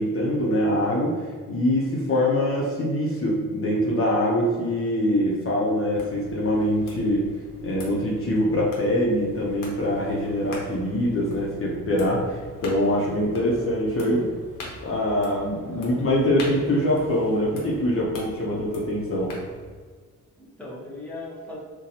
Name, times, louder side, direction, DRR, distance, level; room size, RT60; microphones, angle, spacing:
voice 1, 0.0-7.3 7.6-14.3 14.8-19.3, left 1 dB, 45° left, -4 dB, 0.7 m, -24 dB
sound 1, 5.9-19.7, left 1 dB, 85° left, 0.9 m, -43 dB
voice 2, 13.1-14.4 15.5-16.1 20.4-21.6, left 2 dB, 5° left, -6 dB, 1.0 m, -41 dB
4.0 x 2.2 x 2.7 m, 1.5 s
cardioid pair, 95°, 32 cm